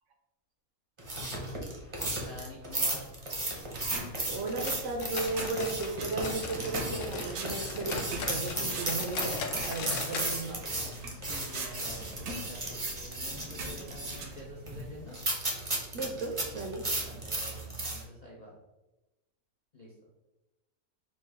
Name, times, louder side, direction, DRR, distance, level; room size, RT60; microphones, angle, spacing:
sound 1, 1.0-18.0, right 2 dB, 30° right, 0.6 m, -35 dB
voice 1, 2.1-3.1 11.3-15.2 17.0-18.5 19.7-19.9, left 1 dB, 50° left, -4 dB, 0.4 m, -48 dB
sound 2, 3.6-15.1, right 2 dB, 80° right, 1.2 m, -43 dB
voice 2, 4.3-10.6 11.0-11.2 15.9-16.9, right 3 dB, 65° right, 2 dB, 0.8 m, -35 dB
sound 3, 4.5-6.7 7.0-10.3 10.6-10.7 11.1-11.2 11.8-11.9, left 5 dB, 70° left, 0.8 m, -39 dB
5.1 x 2.3 x 3.3 m, 1.0 s
omnidirectional pair, 1.6 m